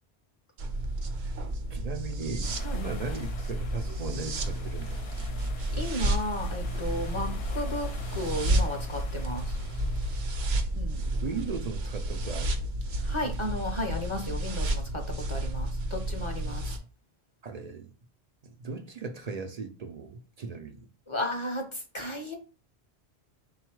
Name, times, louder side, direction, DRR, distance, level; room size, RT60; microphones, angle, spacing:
sound 1, 0.6-16.8, right 1 dB, 75° right, 0.9 m, -31 dB
voice 1, 1.7-5.3 7.2-7.5 10.6-10.7 11.0-12.5 17.4-17.9 18.4-20.9, right 5 dB, 50° right, 0.5 m, -38 dB
sound 2, 2.4-10.2, left 4 dB, 70° left, 0.8 m, -44 dB
voice 2, 5.7-9.6 10.7-11.0 13.0-15.0 15.3-16.7 21.1-22.3, left 1 dB, 35° left, 0.6 m, -34 dB
3.9 x 2.3 x 4.5 m
omnidirectional pair, 1.1 m